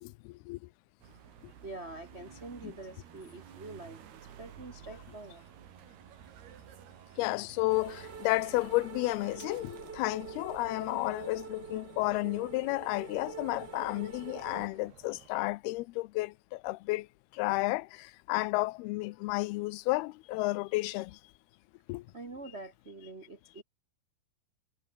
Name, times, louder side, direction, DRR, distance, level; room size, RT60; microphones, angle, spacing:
voice 1, 0.0-0.6 2.6-2.7 7.2-17.1 17.3-21.2 21.9-22.0, left 21 dB, 90° left, 2.6 m, -32 dB
sound 1, 1.0-15.3, right 9 dB, 90° right, 4.6 m, -54 dB
voice 2, 1.6-4.0 4.4-5.4 22.1-23.6, right 2 dB, 55° right, 0.7 m, -45 dB
sound 2, 7.7-14.7, right 5 dB, 35° right, 2.2 m, -45 dB
omnidirectional pair, 4.4 m